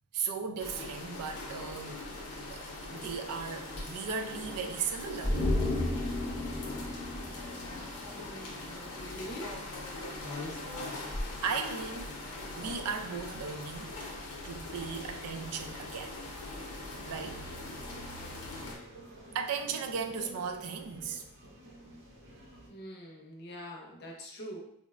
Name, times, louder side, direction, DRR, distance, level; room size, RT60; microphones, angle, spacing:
voice 1, 0.1-2.0 2.5-5.4 10.7-11.1 11.4-12.2 12.5-13.9 14.4-16.2 17.1-17.4 19.3-21.2, right 6 dB, 90° right, 6 dB, 0.4 m, -36 dB
sound 1, 0.6-18.8, left 2 dB, 90° left, 0.7 m, -41 dB
sound 2, 5.2-8.6 8.9-9.0, left 1 dB, 20° right, 0.6 m, -33 dB
voice 2, 8.1-9.6 22.7-24.6, equal, 45° left, 0 dB, 0.6 m, -44 dB
sound 3, 16.6-22.7, equal, 55° right, 0.6 m, -51 dB
3.9 x 2.1 x 2.3 m, 0.75 s
head